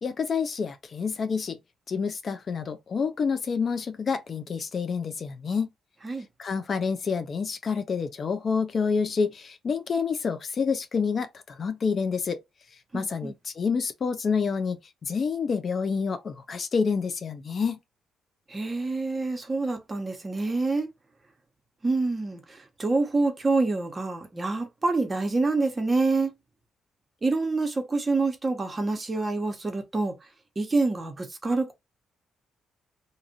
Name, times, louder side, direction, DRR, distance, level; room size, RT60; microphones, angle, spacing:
voice 1, 0.0-1.6 1.9-5.7 6.4-12.4 12.9-17.8, left 5 dB, 45° left, 0.5 m, -28 dB
voice 2, 12.9-13.3 18.5-20.9 21.8-22.4 22.8-26.3 27.2-30.1 30.6-31.7, right 3 dB, 25° right, 0.9 m, -26 dB
2.5 x 2.5 x 2.7 m
cardioid pair, 90°, 0 cm